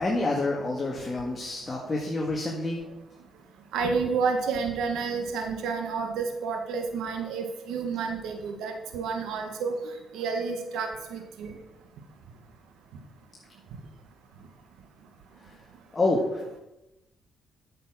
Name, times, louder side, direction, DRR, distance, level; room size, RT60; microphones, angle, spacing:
voice 1, 0.0-2.8 15.4-15.5 15.9-16.6, left 2 dB, 25° left, -2 dB, 1.8 m, -28 dB
voice 2, 3.7-9.8 10.1-11.5, right 5 dB, 85° right, 4 dB, 1.5 m, -30 dB
9.0 x 6.8 x 6.2 m, 0.95 s
cardioid pair, 90°, 0 cm